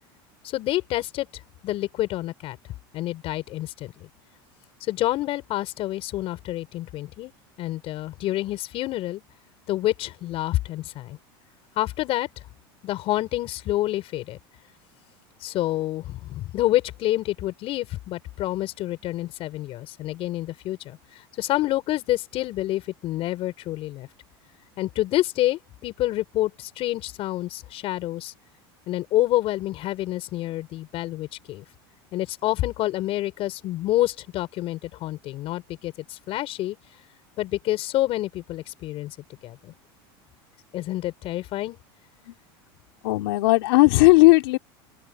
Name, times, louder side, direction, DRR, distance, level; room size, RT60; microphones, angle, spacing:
voice 1, 0.4-1.3 1.6-2.6 2.9-4.1 4.8-7.3 7.6-9.2 9.7-11.2 11.7-12.3 12.8-14.4 15.4-24.1 24.8-28.3 28.9-31.6 32.1-36.8 37.4-39.1 39.4-39.7 40.7-41.8, left 15 dB, 50° left, 5.0 m, -28 dB
voice 2, 43.0-44.6, left 23 dB, 75° left, 3.1 m, -16 dB
open air
supercardioid pair, 110°, 12 cm